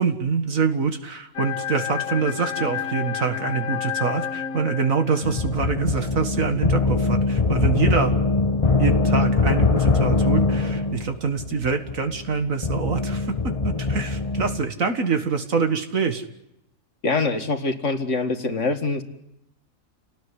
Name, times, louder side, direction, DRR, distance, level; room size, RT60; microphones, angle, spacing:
voice 1, 0.0-8.1 8.7-13.3 13.6-16.2, right 5 dB, 80° right, 7 dB, 2.2 m, -25 dB
sound 1, 1.3-5.8, left 9 dB, 85° left, 1.9 m, -30 dB
sound 2, 5.2-14.6, left 3 dB, 25° left, 1.2 m, -22 dB
voice 2, 17.0-19.0, left 3 dB, 60° left, 7 dB, 2.4 m, -24 dB
29.5 x 18.5 x 10.0 m, 0.83 s
omnidirectional pair, 1.4 m